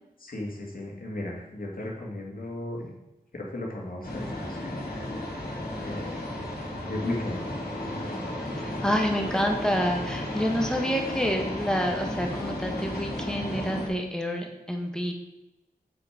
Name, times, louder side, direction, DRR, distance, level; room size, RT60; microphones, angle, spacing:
voice 1, 0.2-2.9 3.3-4.8 5.7-6.2 6.8-7.4, left 1 dB, 65° left, -1 dB, 2.0 m, -35 dB
sound 1, 4.0-13.9, left 1 dB, 90° left, 2.4 m, -34 dB
voice 2, 8.6-15.1, equal, 5° left, 2 dB, 1.3 m, -28 dB
7.6 x 5.7 x 5.0 m, 0.94 s
wide cardioid pair, 95°, 16 cm